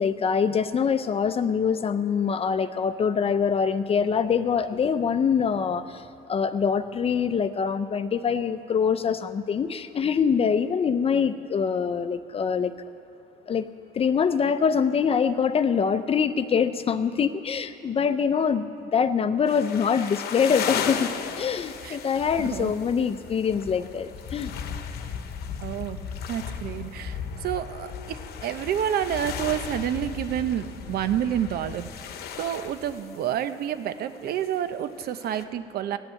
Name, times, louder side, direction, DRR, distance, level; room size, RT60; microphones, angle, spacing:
voice 1, 0.0-5.8 6.3-12.7 13.5-13.7 14.0-21.1 21.4-24.5, left 6 dB, 35° left, 12 dB, 0.6 m, -24 dB
sound 1, 19.5-35.4, left 7 dB, 70° left, 1.1 m, -36 dB
voice 2, 22.4-22.7 25.6-26.0 26.3-31.9 32.4-36.0, right 10 dB, 65° right, 11 dB, 0.8 m, -29 dB
17.0 x 8.9 x 7.6 m, 2.6 s
cardioid pair, 110°, 17 cm